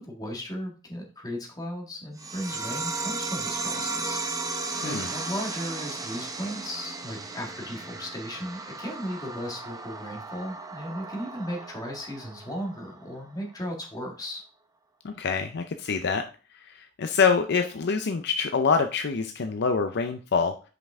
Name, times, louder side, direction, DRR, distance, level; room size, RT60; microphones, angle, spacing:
voice 1, 0.0-14.4, equal, 20° left, 0 dB, 1.7 m, -36 dB
sound 1, 2.2-13.2, right 3 dB, 20° right, 0.7 m, -35 dB
voice 2, 15.0-16.2 16.6-20.5, left 5 dB, 55° left, 7 dB, 0.5 m, -25 dB
5.9 x 5.3 x 3.6 m, 0.36 s
head